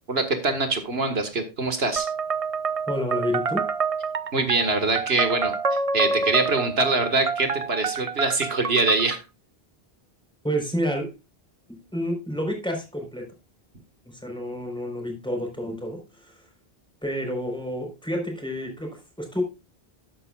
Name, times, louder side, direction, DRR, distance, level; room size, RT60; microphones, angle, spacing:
voice 1, 0.1-2.1 4.3-5.5 5.9-9.2, right 3 dB, 80° right, 7 dB, 1.9 m, -24 dB
sound 1, 2.0-9.2, right 4 dB, 40° right, 0.6 m, -28 dB
voice 2, 2.9-3.6 10.4-11.1 11.9-13.3 14.1-16.3 17.0-19.4, equal, 5° left, 2 dB, 4.2 m, -29 dB
12.5 x 11.0 x 2.4 m, 0.27 s
omnidirectional pair, 1.0 m